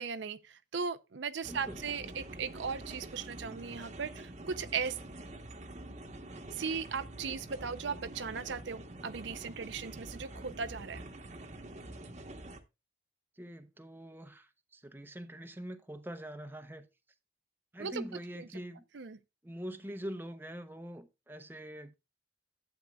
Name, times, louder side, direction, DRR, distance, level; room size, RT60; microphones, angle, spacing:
voice 1, 0.0-5.0 6.6-11.0 17.8-18.0 18.4-18.5 18.9-19.2, right 5 dB, 70° right, 0.5 m, -37 dB
sound 1, 1.4-12.6, right 1 dB, 35° right, 1.0 m, -46 dB
voice 2, 1.5-1.8 13.4-16.9 17.7-18.8 19.4-22.0, equal, 10° right, 0.7 m, -44 dB
11.0 x 8.0 x 2.3 m
head